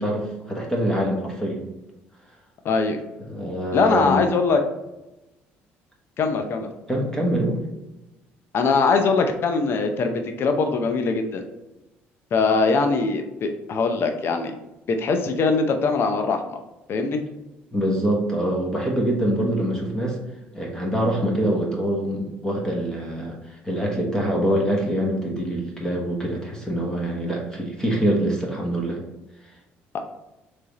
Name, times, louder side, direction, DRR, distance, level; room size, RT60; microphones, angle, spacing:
voice 1, 0.0-1.7 3.3-4.2 6.9-7.6 17.7-20.2 20.5-23.3 23.6-29.0, right 1 dB, 10° left, -1 dB, 1.2 m, -24 dB
voice 2, 2.6-3.0 3.7-4.6 6.2-6.7 8.5-11.4 12.3-14.5 14.9-16.6 16.9-17.2, left 4 dB, 50° left, 6 dB, 0.6 m, -22 dB
3.3 x 3.3 x 4.0 m, 0.97 s
supercardioid pair, 85°, 5 cm